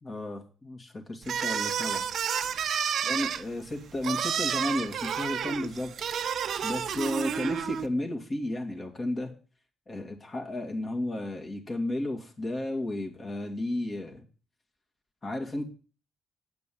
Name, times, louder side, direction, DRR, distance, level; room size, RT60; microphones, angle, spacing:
voice 1, 0.0-2.1 3.0-5.9 6.6-9.3 9.9-14.2 15.2-15.6, left 1 dB, 35° left, 3 dB, 2.3 m, -33 dB
sound 1, 1.2-7.9, right 8 dB, 65° right, 0.7 m, -30 dB
8.7 x 6.0 x 7.7 m, 0.38 s
cardioid pair, 90°, 0 cm